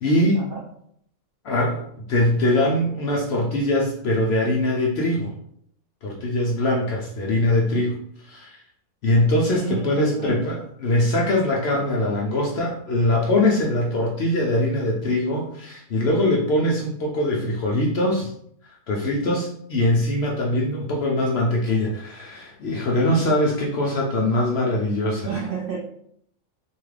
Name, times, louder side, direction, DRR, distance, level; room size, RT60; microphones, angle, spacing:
voice 1, 0.0-0.4 1.4-1.8 2.1-5.3 6.0-8.0 8.2-8.6 9.0-18.3 18.9-25.3, left 1 dB, 65° left, -2 dB, 0.6 m, -22 dB
voice 2, 9.5-10.5 25.3-25.8, right 6 dB, 70° right, -3 dB, 0.5 m, -30 dB
2.8 x 2.3 x 3.1 m, 0.69 s
omnidirectional pair, 1.5 m